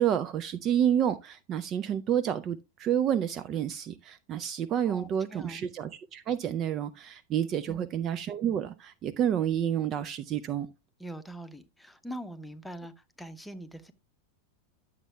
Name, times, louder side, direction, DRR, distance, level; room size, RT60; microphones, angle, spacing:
voice 1, 0.0-10.7, right 9 dB, 30° right, 0.4 m, -29 dB
voice 2, 4.8-5.6 7.7-7.9 11.0-13.9, right 1 dB, 5° left, 0.9 m, -43 dB
10.5 x 7.1 x 2.2 m
figure-of-eight pair, 90°, 0 cm